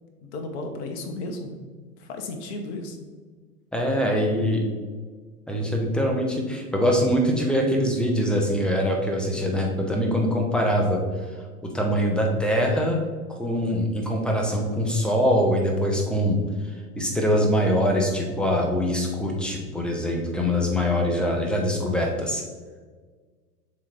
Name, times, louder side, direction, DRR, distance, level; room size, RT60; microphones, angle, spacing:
voice 1, 0.2-3.0, left 2 dB, 45° left, 4 dB, 1.0 m, -34 dB
voice 2, 3.7-4.6 5.5-11.0 11.6-13.0 13.3-16.4 16.9-22.4, equal, ahead, 0 dB, 0.8 m, -23 dB
7.3 x 3.2 x 4.4 m, 1.4 s
figure-of-eight pair, 100°, 47 cm